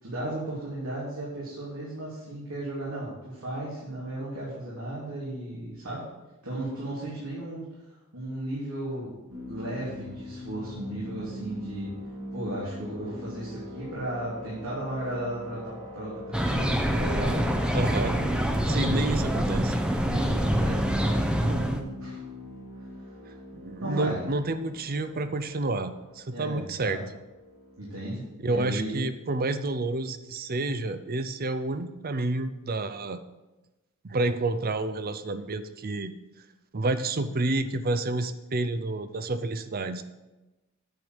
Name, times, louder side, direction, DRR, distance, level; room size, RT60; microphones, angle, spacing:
voice 1, 0.0-6.0 6.4-7.6 8.1-9.1 9.5-11.9 12.3-17.4 17.9-18.1 18.6-19.2 20.0-22.2 23.8-24.2 26.3-27.0 27.8-29.0, right 1 dB, 85° right, -8 dB, 3.1 m, -35 dB
sound 1, 9.3-28.0, equal, 65° right, 2.3 m, -41 dB
sound 2, 16.3-21.8, equal, 5° right, 0.7 m, -26 dB
voice 2, 17.7-18.1 18.7-19.7 23.5-27.0 28.4-33.2 34.0-36.1 36.7-40.0, right 2 dB, 45° right, 11 dB, 0.6 m, -29 dB
9.2 x 5.2 x 7.9 m, 1.1 s
head